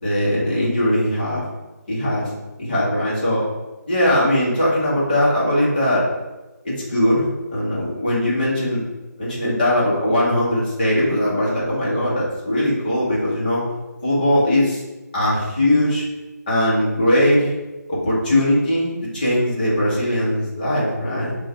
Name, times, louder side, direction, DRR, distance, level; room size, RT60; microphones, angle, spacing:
voice 1, 0.0-1.4 1.9-2.3 2.6-3.5 3.9-6.1 6.6-8.8 9.2-13.6 14.0-14.8 15.1-16.0 16.5-17.5 17.9-21.3, left 1 dB, 30° left, -7 dB, 1.3 m, -20 dB
4.4 x 2.6 x 4.5 m, 1.1 s
figure-of-eight pair, 175°, 10 cm